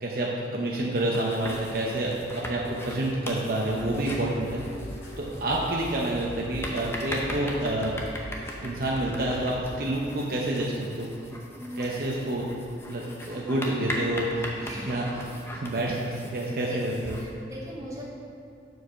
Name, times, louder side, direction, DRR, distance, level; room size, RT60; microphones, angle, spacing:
voice 1, 0.0-4.6 5.2-7.9 8.6-11.1 11.7-12.5 12.8-14.5 14.9-15.0 15.5-17.1, right 1 dB, 50° right, -3 dB, 0.7 m, -28 dB
sound 1, 1.0-17.3, left 1 dB, 15° left, 0.6 m, -39 dB
sound 2, 3.2-9.6, equal, 70° left, 1.8 m, -41 dB
voice 2, 11.5-12.0 14.6-15.0 16.5-16.8 17.1-18.0, equal, 15° right, -5 dB, 1.2 m, -39 dB
7.1 x 4.7 x 5.6 m, 2.6 s
head